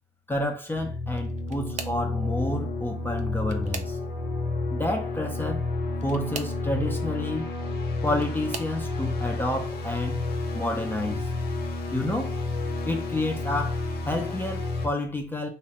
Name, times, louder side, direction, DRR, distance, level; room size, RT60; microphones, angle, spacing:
voice 1, 0.3-4.0 4.7-5.7 6.0-7.5 8.0-10.2 10.5-11.3 11.9-12.4 12.8-15.5, left 1 dB, 10° left, 0.4 m, -30 dB
sound 1, 0.7-14.9, left 2 dB, 70° left, 0.7 m, -30 dB
sound 2, 1.1-2.1 3.1-4.3 5.9-6.6 7.7-8.8 9.5-9.9 10.3-10.4 11.8-11.9, right 6 dB, 45° right, 0.4 m, -40 dB
2.8 x 2.1 x 2.8 m
cardioid pair, 110°, 17 cm